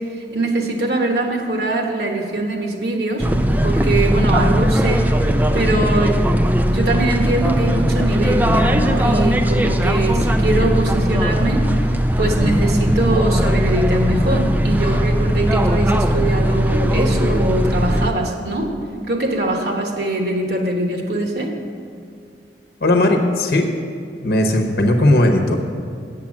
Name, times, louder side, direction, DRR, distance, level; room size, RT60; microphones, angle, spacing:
voice 1, 0.1-3.3 3.6-5.1 5.5-6.3 6.7-18.7 19.1-21.5, right 2 dB, 60° right, 2 dB, 1.2 m, -22 dB
sound 1, 3.2-18.1, equal, 10° right, 0.4 m, -18 dB
voice 2, 22.8-23.7 24.2-25.6, left 1 dB, 60° left, 3 dB, 0.9 m, -16 dB
8.9 x 6.8 x 7.3 m, 2.4 s
head